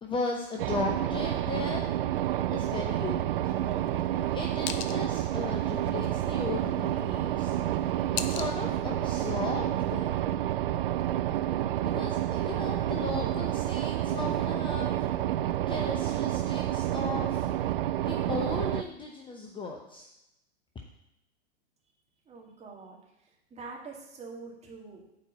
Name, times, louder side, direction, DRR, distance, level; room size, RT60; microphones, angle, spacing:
voice 1, 0.0-1.9 2.5-3.6 4.3-7.6 8.1-10.3 11.9-14.9 15.7-17.5 18.0-20.1, left 3 dB, 15° left, 2 dB, 0.8 m, -36 dB
sound 1, 0.6-18.8, right 12 dB, 55° right, 0.6 m, -29 dB
sound 2, 3.4-9.4, left 9 dB, 45° left, 0.7 m, -43 dB
voice 2, 22.3-23.0 23.5-25.0, right 4 dB, 20° right, -1 dB, 2.2 m, -44 dB
8.6 x 4.6 x 7.4 m, 0.87 s
figure-of-eight pair, 100°, 33 cm